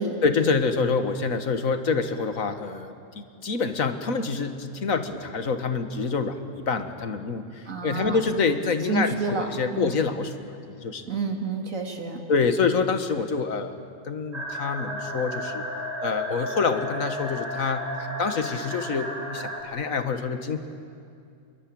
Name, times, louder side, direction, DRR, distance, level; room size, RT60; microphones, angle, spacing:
voice 1, 0.2-6.4 6.7-7.4 7.8-10.3 10.7-11.1 12.3-13.8 14.1-15.6 16.0-17.8 18.2-20.6, left 5 dB, 85° left, 8 dB, 1.9 m, -26 dB
voice 2, 7.7-8.2 8.9-10.0 11.0-12.2, right 4 dB, 80° right, 3 dB, 3.0 m, -29 dB
sound 1, 14.3-19.6, equal, 30° right, 4.2 m, -33 dB
28.5 x 22.5 x 8.7 m, 2.5 s
omnidirectional pair, 1.4 m